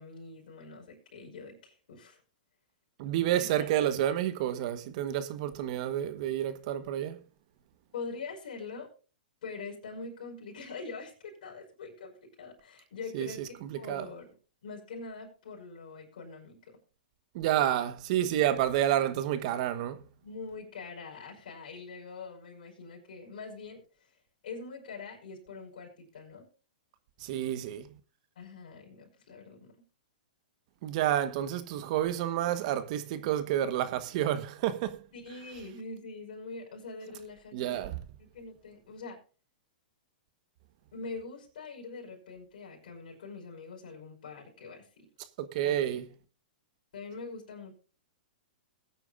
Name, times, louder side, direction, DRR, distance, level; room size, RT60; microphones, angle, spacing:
voice 1, 0.0-2.2 3.4-3.7 7.9-8.9 9.4-16.7 20.2-24.1 24.4-26.4 28.4-29.7 35.1-37.9 38.2-39.2 40.9-45.1 45.6-45.8 46.9-47.7, left 4 dB, 70° left, 5.2 m, -44 dB
voice 2, 3.0-7.2 13.1-13.3 13.6-14.1 17.3-20.0 27.2-27.9 30.8-35.0 37.5-38.0 45.4-46.0, right 11 dB, 50° right, 1.2 m, -29 dB
21.5 x 9.3 x 2.5 m
hypercardioid pair, 125°, 5 cm